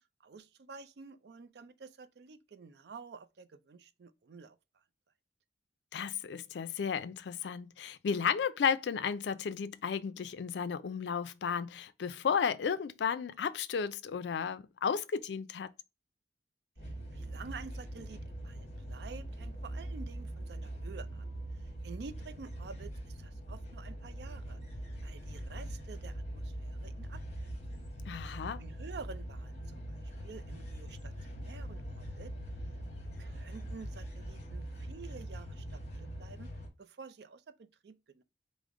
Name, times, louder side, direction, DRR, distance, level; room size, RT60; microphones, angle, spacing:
voice 1, 0.0-4.6 16.8-21.3 21.6-24.6 25.0-27.5 28.6-32.3 33.2-36.5 36.8-38.2, right 4 dB, 65° right, 0.4 m, -50 dB
voice 2, 5.9-15.7 28.1-28.6, left 6 dB, 70° left, 0.4 m, -33 dB
sound 1, 16.8-36.7, right 1 dB, 40° left, 1.0 m, -42 dB
5.0 x 2.0 x 3.5 m
head